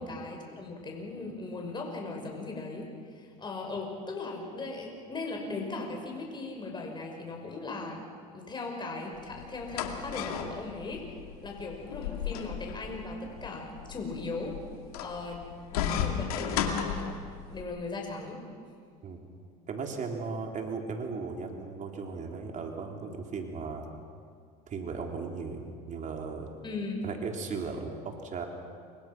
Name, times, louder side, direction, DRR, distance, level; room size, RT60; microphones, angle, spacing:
voice 1, 0.0-8.0 8.3-11.1 11.4-14.6 15.0-15.5 15.9-16.9 17.5-18.4 26.6-27.0, left 3 dB, 25° left, 1 dB, 6.0 m, -38 dB
sound 1, 9.1-17.6, left 8 dB, 90° left, 2.3 m, -35 dB
voice 2, 19.7-23.9 24.7-26.5 27.0-28.5, right 4 dB, 40° right, 2 dB, 3.6 m, -36 dB
29.0 x 24.5 x 6.2 m, 2.2 s
supercardioid pair, 90°, 19 cm